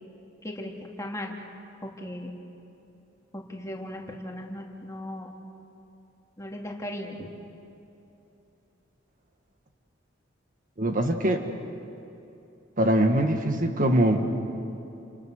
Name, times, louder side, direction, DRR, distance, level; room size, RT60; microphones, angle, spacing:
voice 1, 0.4-1.4 1.8-2.3 3.3-5.3 6.4-7.3, left 1 dB, 15° left, 0 dB, 2.6 m, -37 dB
voice 2, 10.8-11.4 12.8-14.3, right 1 dB, 45° right, 5 dB, 1.6 m, -22 dB
29.5 x 28.0 x 6.5 m, 2.9 s
head